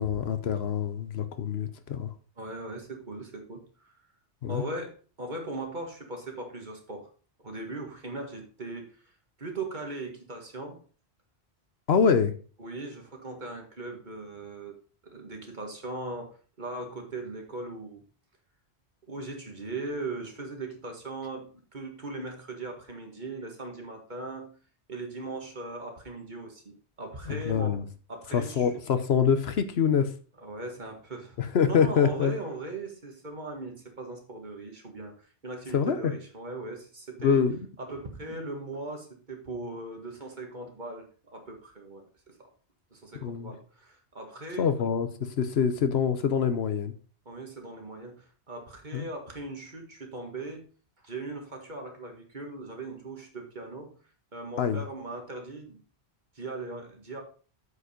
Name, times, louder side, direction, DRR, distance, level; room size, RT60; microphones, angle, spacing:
voice 1, 0.0-2.1 4.4-4.6 11.9-12.3 27.3-27.8 28.3-30.1 31.4-32.3 35.7-36.0 37.2-37.5 43.2-43.5 44.6-46.9 48.9-49.0 54.6-54.8, left 7 dB, 70° left, 1.0 m, -25 dB
voice 2, 2.4-3.9 4.5-7.1 7.4-9.0 9.4-10.8 12.6-18.0 19.1-24.5 24.9-27.8 28.1-28.7 30.4-37.5 37.8-42.5 42.9-44.6 47.3-50.6 51.0-53.9 54.3-55.8 56.3-57.2, right 2 dB, 45° right, 2.0 m, -39 dB
8.2 x 5.1 x 5.1 m
omnidirectional pair, 1.1 m